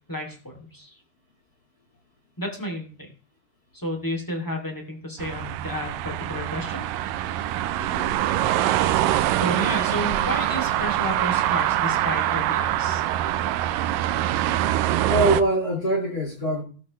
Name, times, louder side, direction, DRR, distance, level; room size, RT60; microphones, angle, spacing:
voice 1, 0.1-0.9 2.4-3.1 3.7-6.8 9.3-13.0, equal, 5° left, 2 dB, 2.3 m, -31 dB
sound 1, 5.2-15.4, right 13 dB, 90° right, 2.4 m, -24 dB
voice 2, 7.7-8.1 15.1-16.6, right 1 dB, 30° left, 1 dB, 2.5 m, -24 dB
18.0 x 8.1 x 3.2 m, 0.39 s
omnidirectional pair, 3.9 m